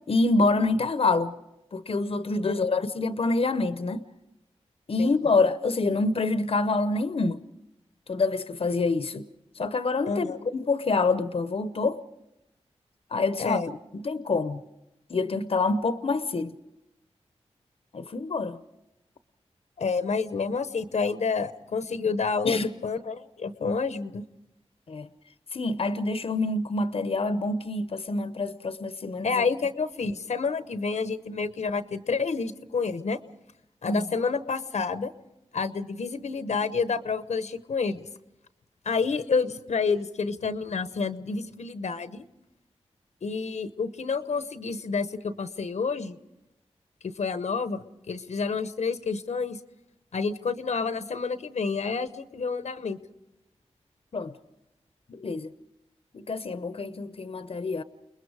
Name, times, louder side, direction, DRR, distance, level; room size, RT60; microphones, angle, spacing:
voice 1, 0.1-1.3 1.7-4.0 4.9-7.4 8.1-9.2 9.6-12.0 13.1-13.6 14.0-14.6 15.1-16.6 17.9-18.6 22.4-22.7 24.9-25.1 25.5-29.4 33.8-34.0 54.1-54.3 55.1-55.5 56.1-57.8, left 3 dB, 55° left, 0.8 m, -26 dB
voice 2, 2.4-2.8 5.0-5.1 10.1-10.4 13.4-13.7 19.8-24.2 29.2-33.2 33.8-35.1 35.5-38.1 38.8-42.2 43.2-46.2 47.2-49.6 50.1-53.0, left 4 dB, 80° left, 1.0 m, -29 dB
29.5 x 20.5 x 4.9 m
cardioid pair, 55°, 12 cm